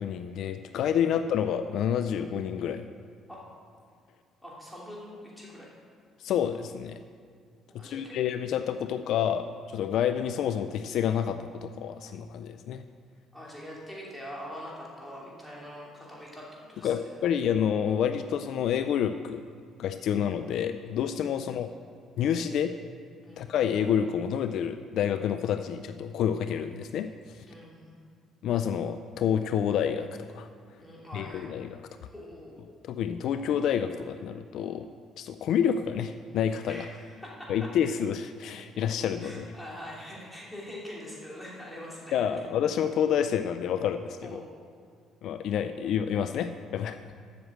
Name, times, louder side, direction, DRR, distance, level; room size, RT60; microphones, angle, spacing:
voice 1, 0.0-2.8 6.2-7.0 7.8-12.8 16.8-19.4 19.8-21.7 22.2-22.7 23.4-27.1 27.3-27.4 28.4-30.5 31.1-31.8 32.8-34.9 35.2-36.9 37.5-39.5 42.1-44.4 45.2-47.0, left 8 dB, 70° left, 9 dB, 0.4 m, -28 dB
voice 2, 4.4-5.7 7.7-8.2 13.3-17.1 21.3-21.7 23.2-23.5 27.4-27.9 30.7-31.5 32.1-32.6 36.7-37.7 39.2-42.1 44.2-44.4, equal, 5° left, -5 dB, 3.0 m, -43 dB
7.9 x 6.6 x 7.5 m, 2.2 s
cardioid pair, 100°, 0 cm